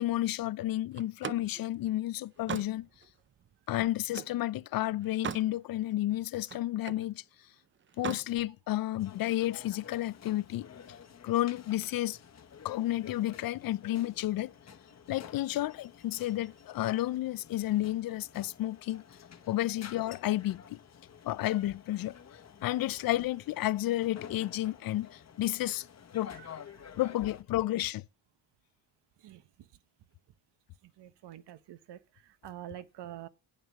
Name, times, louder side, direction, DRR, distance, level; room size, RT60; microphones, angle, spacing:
voice 1, 0.0-2.9 3.7-7.2 8.0-10.7 11.2-12.2 12.6-14.5 15.1-19.0 19.5-20.8 21.2-22.2 22.6-25.9 26.1-26.3 27.0-28.0, left 15 dB, 55° left, 0.5 m, -31 dB
Slam, 1.0-4.4 4.9-5.5 5.9-7.1 7.9-8.3, right 8 dB, 30° right, 0.4 m, -41 dB
sound 1, 9.0-27.4, left 7 dB, 35° left, 1.2 m, -51 dB
voice 2, 31.0-33.3, right 12 dB, 65° right, 1.0 m, -46 dB
9.1 x 6.4 x 7.0 m
cardioid pair, 135°, 44 cm